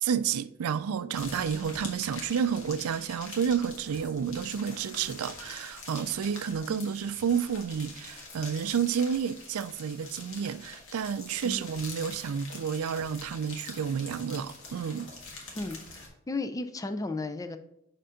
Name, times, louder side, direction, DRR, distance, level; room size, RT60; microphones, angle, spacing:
voice 1, 0.0-15.1, right 7 dB, 75° right, 0.4 m, -30 dB
sound 1, 1.1-16.1, left 3 dB, 65° left, 1.6 m, -45 dB
voice 2, 15.5-17.6, left 2 dB, 15° left, 0.4 m, -35 dB
6.9 x 3.7 x 4.9 m
head